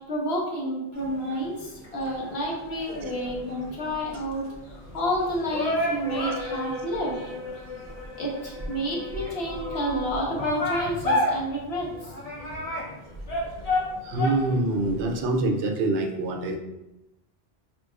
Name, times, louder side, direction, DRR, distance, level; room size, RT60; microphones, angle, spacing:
voice 1, 0.1-7.3 8.2-11.9, equal, 65° left, -3 dB, 1.2 m, -30 dB
sound 1, 0.9-15.3, left 1 dB, 40° left, 0.7 m, -32 dB
voice 2, 14.0-16.6, right 2 dB, 80° right, 4 dB, 0.9 m, -25 dB
5.0 x 2.9 x 2.4 m, 0.92 s
omnidirectional pair, 1.2 m